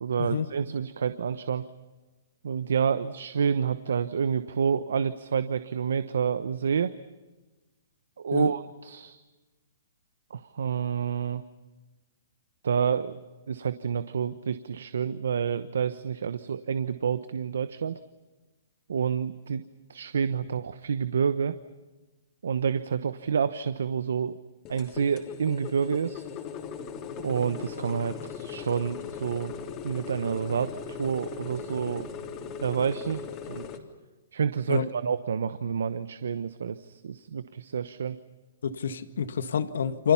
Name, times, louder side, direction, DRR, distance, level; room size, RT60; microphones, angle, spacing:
voice 1, 0.0-1.6 2.4-6.9 8.2-9.2 10.3-11.4 12.6-13.2 13.5-18.0 18.9-19.6 19.9-21.6 22.4-24.4 24.7-26.2 27.2-29.5 29.8-32.1 32.6-33.7 34.3-38.2, right 7 dB, 80° right, 1.0 m, -28 dB
sound 1, 24.6-33.8, left 7 dB, 30° left, 3.5 m, -39 dB
voice 2, 38.6-40.1, left 7 dB, 80° left, 1.8 m, -27 dB
29.5 x 25.0 x 5.8 m
hypercardioid pair, 145°, 0 cm